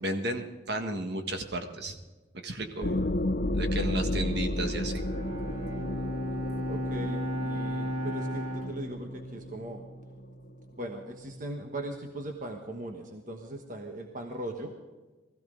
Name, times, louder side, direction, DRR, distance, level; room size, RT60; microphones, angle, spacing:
voice 1, 0.0-2.0 2.4-2.8 3.5-5.0, right 1 dB, 60° right, 5 dB, 1.7 m, -33 dB
voice 2, 2.6-3.0 6.7-9.8 10.8-14.7, right 1 dB, 45° right, 4 dB, 1.3 m, -39 dB
sound 1, 2.8-10.2, left 1 dB, 50° left, 0.8 m, -32 dB
Bowed string instrument, 4.8-10.4, equal, 80° right, 3.1 m, -35 dB
20.0 x 15.0 x 3.9 m, 1.2 s
head